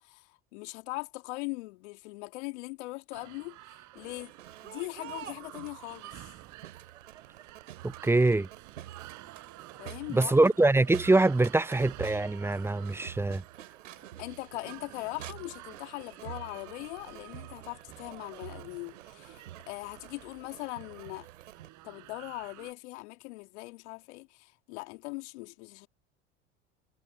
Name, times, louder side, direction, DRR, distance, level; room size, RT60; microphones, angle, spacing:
voice 1, 0.0-4.3 4.6-6.3 9.8-10.3 14.2-21.3 21.8-25.9, left 24 dB, 70° left, 2.6 m, -40 dB
sound 1, 3.1-22.7, right 17 dB, 55° right, 3.9 m, -51 dB
Crowd, 3.9-21.7, right 12 dB, 80° right, 3.3 m, -48 dB
voice 2, 7.8-8.5 10.1-13.4, right 2 dB, 5° right, 0.6 m, -24 dB
hypercardioid pair, 75°, 36 cm